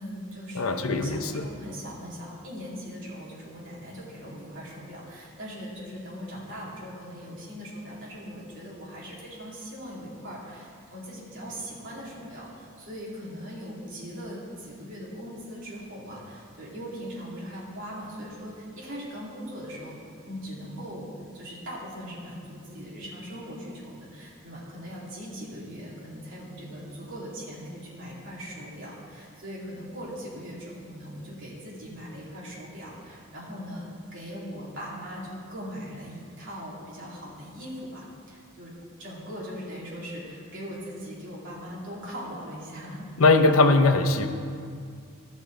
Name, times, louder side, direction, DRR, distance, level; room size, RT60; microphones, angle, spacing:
voice 1, 0.0-21.1 21.3-38.7 39.0-43.1, equal, 60° right, -6 dB, 2.5 m, -40 dB
voice 2, 0.5-1.5 43.2-44.3, left 3 dB, 75° left, 6 dB, 0.7 m, -20 dB
14.0 x 6.1 x 3.8 m, 2.2 s
head